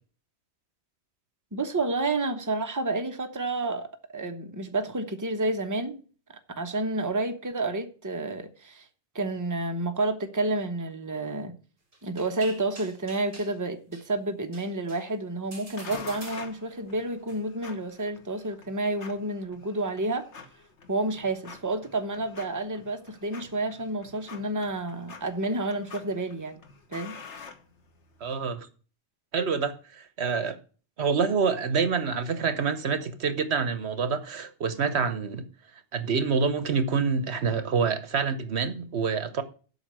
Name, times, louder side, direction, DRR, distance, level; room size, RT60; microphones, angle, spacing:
voice 1, 1.5-3.9 4.1-6.0 6.6-8.9 9.1-11.6 12.0-20.3 20.9-26.6 26.9-27.2, right 2 dB, 15° right, 1.1 m, -30 dB
sound 1, 11.9-13.6 13.9-14.1 14.5-15.1 15.5-16.8 17.3-17.4, right 2 dB, 50° right, 2.3 m, -46 dB
sound 2, 15.8-28.3, left 5 dB, 80° left, 1.6 m, -47 dB
voice 2, 28.2-28.7 29.3-30.6 31.0-35.4 35.9-39.4, right 5 dB, 70° right, 1.3 m, -27 dB
8.3 x 5.5 x 7.5 m
omnidirectional pair, 1.2 m